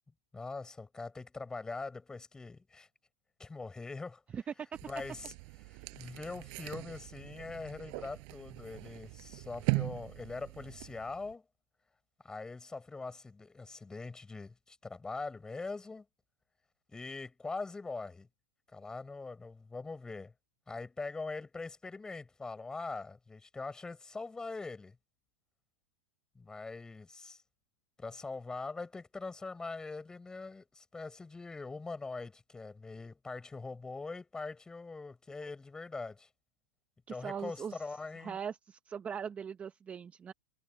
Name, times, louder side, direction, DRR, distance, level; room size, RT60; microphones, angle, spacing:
voice 1, 0.3-2.9 3.4-4.2 4.8-5.3 5.6-11.4 12.2-16.0 16.9-18.3 18.7-20.3 20.7-25.0 26.3-27.4 28.0-36.3 37.1-38.4, left 3 dB, 10° left, 6.3 m, -42 dB
voice 2, 4.3-4.7 37.1-37.8 38.2-40.3, right 7 dB, 20° right, 0.8 m, -40 dB
sound 1, 4.7-11.3, right 39 dB, 50° right, 7.0 m, -40 dB
hypercardioid pair, 125°, 7 cm